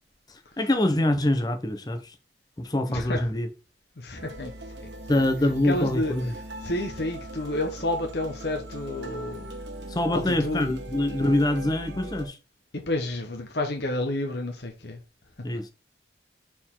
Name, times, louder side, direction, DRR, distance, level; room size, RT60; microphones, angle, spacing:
voice 1, 0.6-2.0 2.6-3.5 5.1-6.3 9.9-12.4 15.4-15.7, left 1 dB, 20° left, 0.8 m, -24 dB
voice 2, 2.9-3.2 4.0-4.5 5.1-5.2 5.6-6.1 6.6-9.5 10.1-10.7 12.7-15.0, left 1 dB, 65° left, 1.0 m, -30 dB
sound 1, 4.2-12.3, right 1 dB, 80° right, 1.2 m, -40 dB
6.6 x 4.5 x 3.8 m
head